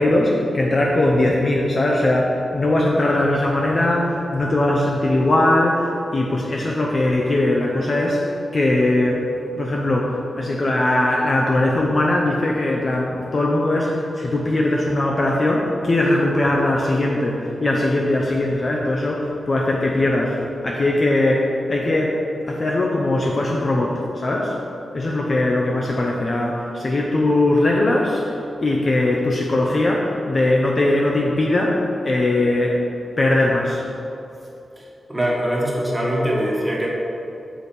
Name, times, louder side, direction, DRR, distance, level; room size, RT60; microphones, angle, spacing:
voice 1, 0.0-8.3 8.5-9.2 9.6-20.4 20.6-22.1 22.5-24.5 24.9-32.7 33.2-33.8, left 1 dB, 35° left, -2 dB, 0.6 m, -20 dB
voice 2, 35.1-36.9, equal, 10° right, -4 dB, 1.3 m, -22 dB
6.5 x 5.0 x 4.3 m, 2.7 s
wide cardioid pair, 150°, 0 cm